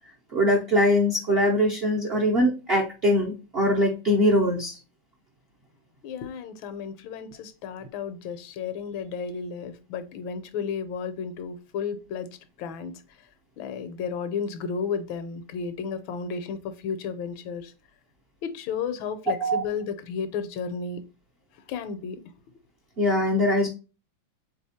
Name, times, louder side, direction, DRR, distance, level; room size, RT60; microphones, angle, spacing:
voice 1, 0.3-4.8 19.4-19.6 23.0-23.7, equal, 60° right, -1 dB, 0.6 m, -22 dB
voice 2, 6.0-12.3 12.6-12.9 13.6-17.7 18.4-21.0 21.7-22.2, left 6 dB, 90° left, 11 dB, 1.5 m, -33 dB
3.8 x 3.3 x 4.2 m, 0.32 s
omnidirectional pair, 2.1 m